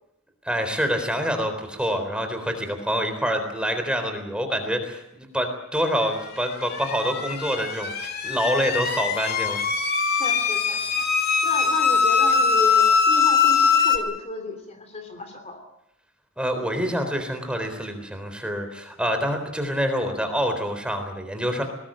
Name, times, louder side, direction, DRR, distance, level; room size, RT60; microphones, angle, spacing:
voice 1, 0.4-9.6 16.4-21.6, equal, 5° right, 6 dB, 3.8 m, -26 dB
sound 1, 6.4-14.0, left 6 dB, 50° left, 2.7 m, -22 dB
voice 2, 10.1-11.1 11.4-15.6, left 2 dB, 30° left, 6 dB, 3.1 m, -33 dB
21.0 x 20.0 x 8.9 m, 0.85 s
head